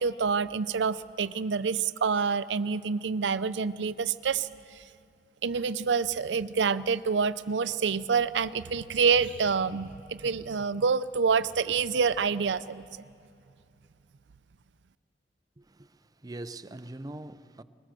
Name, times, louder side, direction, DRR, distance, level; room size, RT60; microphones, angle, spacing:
voice 1, 0.0-4.8 5.4-12.8, right 5 dB, 85° right, 0.5 m, -27 dB
voice 2, 15.6-17.6, right 2 dB, 20° right, 0.5 m, -42 dB
21.5 x 19.0 x 7.6 m
head